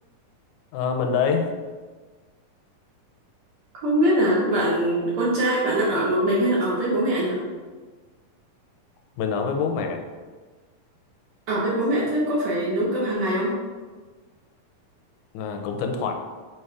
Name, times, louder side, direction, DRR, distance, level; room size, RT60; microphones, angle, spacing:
voice 1, 0.7-1.5 9.2-10.0 15.3-16.1, left 6 dB, 75° left, 4 dB, 1.9 m, -25 dB
voice 2, 3.8-7.4 11.5-13.6, right 1 dB, 65° right, -6 dB, 2.0 m, -22 dB
6.9 x 3.0 x 4.7 m, 1.4 s
omnidirectional pair, 3.8 m